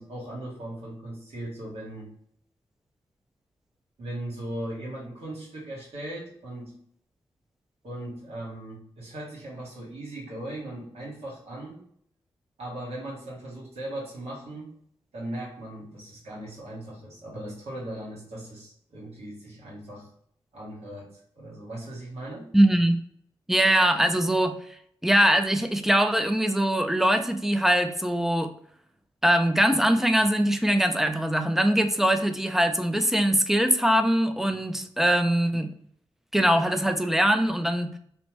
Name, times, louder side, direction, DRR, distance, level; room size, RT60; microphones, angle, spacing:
voice 1, 0.0-2.1 4.0-6.8 7.8-11.8 12.6-14.7 15.1-20.1 20.5-22.5, right 1 dB, 75° right, -4 dB, 1.3 m, -38 dB
voice 2, 22.5-23.0 23.5-24.6 25.0-28.5 29.2-35.7 36.3-37.9, right 1 dB, 5° right, 8 dB, 0.4 m, -22 dB
2.8 x 2.1 x 3.0 m, 0.64 s
cardioid pair, 45°, 11 cm